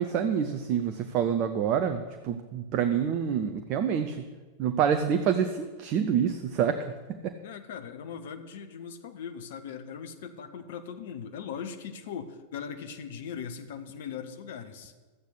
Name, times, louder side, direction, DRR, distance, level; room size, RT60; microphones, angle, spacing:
voice 1, 0.0-4.2 4.6-6.9 7.2-7.4, right 8 dB, 40° right, 7 dB, 0.7 m, -27 dB
voice 2, 7.4-14.9, left 7 dB, 55° left, 9 dB, 1.0 m, -39 dB
12.5 x 8.3 x 6.5 m, 1.3 s
figure-of-eight pair, 90°, 0 cm